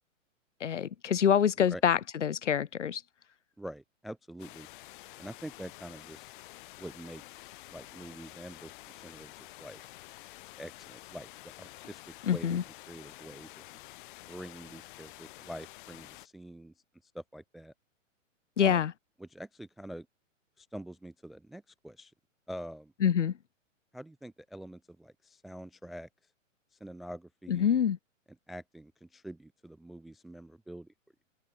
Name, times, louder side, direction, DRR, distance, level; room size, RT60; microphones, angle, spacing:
voice 1, 0.6-3.0 12.2-12.6 18.6-18.9 23.0-23.4 27.5-28.0, left 8 dB, 65° left, 0.8 m, -26 dB
voice 2, 3.6-4.7 5.2-6.3 6.8-8.7 9.0-9.8 10.6-12.6 12.9-13.5 14.3-16.7 17.1-17.7 18.6-18.9 19.2-20.1 20.6-22.1 22.5-22.9 23.9-26.1 26.8-27.8 28.5-30.9, right 1 dB, ahead, 0.3 m, -45 dB
sound 1, 4.4-16.3, left 19 dB, 40° left, 7.0 m, -50 dB
open air
figure-of-eight pair, 115°, 39 cm